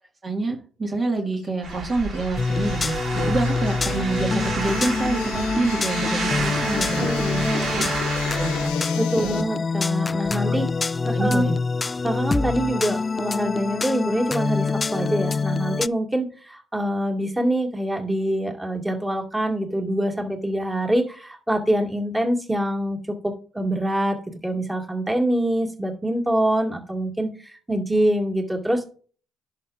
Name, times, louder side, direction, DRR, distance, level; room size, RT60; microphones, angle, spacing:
voice 1, 0.2-7.9 8.3-8.7 9.2-9.4 10.5-10.6 11.1-11.5, right 2 dB, 40° right, 1 dB, 2.0 m, -27 dB
sound 1, 1.4-9.4, left 8 dB, 90° left, 1.0 m, -37 dB
sound 2, 1.6-8.7, right 4 dB, 60° right, 3.5 m, -30 dB
sound 3, 2.4-15.9, left 4 dB, 30° left, 0.3 m, -26 dB
voice 2, 7.0-7.9 9.0-10.7 11.1-11.5 12.0-24.2 24.4-28.8, right 1 dB, 15° right, 1 dB, 2.3 m, -25 dB
11.0 x 6.8 x 2.6 m, 0.41 s
supercardioid pair, 65°, 0 cm